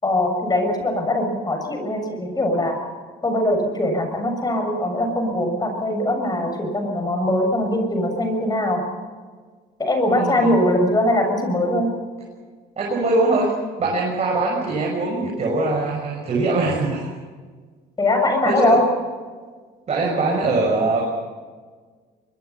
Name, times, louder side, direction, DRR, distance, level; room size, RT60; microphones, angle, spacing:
voice 1, 0.0-2.8 3.2-8.9 9.8-11.9 18.0-18.9, left 1 dB, 25° left, 5 dB, 7.0 m, -21 dB
voice 2, 10.1-10.6 12.8-17.1 18.4-18.8 19.9-21.1, right 2 dB, 40° right, -1 dB, 6.1 m, -22 dB
23.0 x 23.0 x 5.7 m, 1.5 s
cardioid pair, 110°, 17 cm